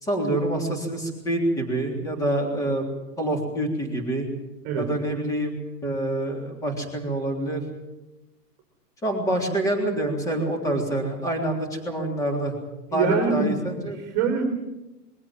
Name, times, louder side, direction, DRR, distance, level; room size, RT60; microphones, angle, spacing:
voice 1, 0.0-2.8 3.2-4.3 4.8-5.5 5.8-7.6 9.0-12.5 12.9-14.0, right 1 dB, 5° left, 2 dB, 3.4 m, -26 dB
voice 2, 12.9-13.6 13.9-14.4, right 6 dB, 20° right, 2 dB, 3.2 m, -24 dB
22.5 x 16.5 x 9.0 m, 0.98 s
hypercardioid pair, 165°, 48 cm